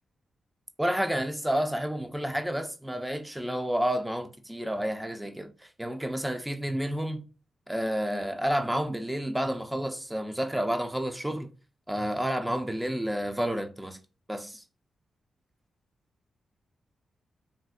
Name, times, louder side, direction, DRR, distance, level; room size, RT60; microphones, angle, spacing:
voice 1, 0.8-7.2 7.7-11.5 11.9-14.0 14.3-14.6, equal, 5° right, 0.4 m, -30 dB
3.2 x 2.6 x 2.3 m
cardioid pair, 100°, 0 cm